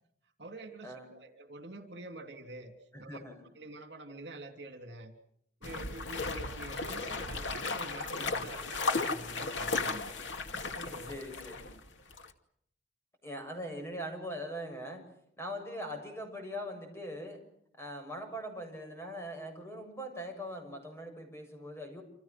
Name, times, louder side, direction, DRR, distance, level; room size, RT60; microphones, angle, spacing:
voice 1, 0.4-2.7 3.0-3.2 3.5-5.1 5.6-10.2 10.7-11.5, right 2 dB, 65° right, 6 dB, 3.4 m, -47 dB
voice 2, 2.9-3.4 11.1-11.7 13.2-15.0 15.4-17.4 17.8-22.0, equal, 15° left, 5 dB, 7.2 m, -41 dB
sound 1, 5.6-11.8 12.1-12.3, left 3 dB, 85° left, 2.4 m, -35 dB
28.5 x 27.5 x 6.2 m, 0.70 s
head